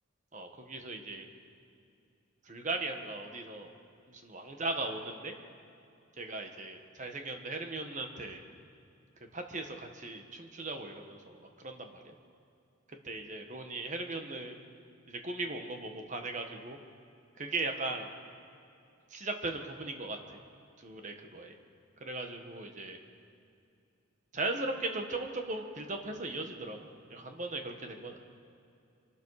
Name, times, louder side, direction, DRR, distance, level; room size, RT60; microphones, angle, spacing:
voice 1, 0.3-1.3 2.5-3.7 4.1-5.3 6.2-8.4 9.3-12.1 13.0-14.6 15.1-16.8 17.4-18.1 19.1-20.2 20.8-21.5 22.0-23.0 24.3-26.8 27.1-28.2, right 2 dB, 35° right, 4 dB, 1.4 m, -38 dB
24.0 x 12.5 x 4.9 m, 2.5 s
head